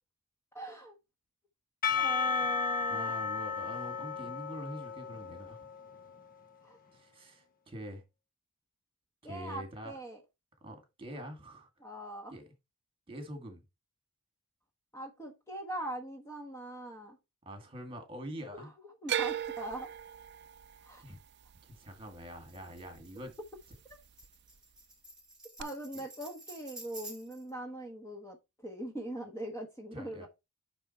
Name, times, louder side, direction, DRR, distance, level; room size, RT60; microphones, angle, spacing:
voice 1, 0.5-0.9 1.9-3.1 6.6-6.8 9.2-10.2 11.8-12.3 14.9-17.2 18.5-18.7 19.0-19.9 20.9-21.0 25.6-28.4 28.6-30.3, right 1 dB, 15° left, 1.2 m, -41 dB
Percussion / Church bell, 1.8-6.2, left 6 dB, 40° left, 0.9 m, -34 dB
voice 2, 2.9-5.6 6.9-8.0 9.2-9.9 10.6-11.7 12.3-12.5 13.1-13.6 17.5-18.7 21.0-21.2 21.6-23.4 25.6-25.7 25.9-26.1 29.9-30.3, equal, 25° right, 2.1 m, -45 dB
sound 1, 19.1-23.3 23.6-24.3 25.6-25.7, right 9 dB, 50° right, 0.4 m, -38 dB
Tambourine, 22.5-27.5, right 1 dB, 5° right, 3.4 m, -50 dB
8.9 x 3.7 x 4.3 m
head